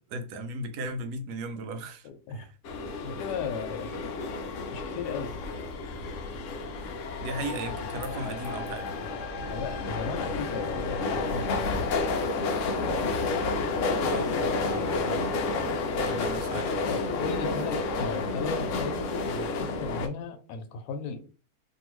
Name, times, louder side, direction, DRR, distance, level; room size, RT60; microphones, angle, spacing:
voice 1, 0.1-2.5 7.2-9.0 14.0-15.2 16.0-16.9, right 2 dB, 80° right, 1.1 m, -37 dB
voice 2, 2.0-2.5 3.0-4.1 4.7-5.4 9.5-11.5 16.9-21.2, left 5 dB, 85° left, 1.2 m, -36 dB
sound 1, 2.6-20.1, left 3 dB, 70° left, 0.7 m, -30 dB
2.7 x 2.6 x 3.0 m
omnidirectional pair, 1.7 m